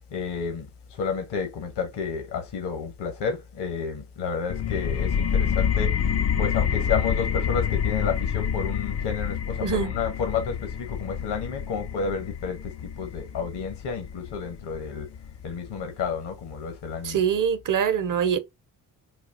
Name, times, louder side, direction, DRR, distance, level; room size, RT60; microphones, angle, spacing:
voice 1, 0.1-5.9 6.4-15.1 15.4-17.2, left 6 dB, 65° left, 1.2 m, -31 dB
sound 1, 4.5-15.9, left 8 dB, 35° left, 0.5 m, -28 dB
voice 2, 9.6-9.9 17.0-18.4, right 7 dB, 45° right, 0.8 m, -24 dB
4.0 x 2.3 x 2.7 m
supercardioid pair, 50°, 44 cm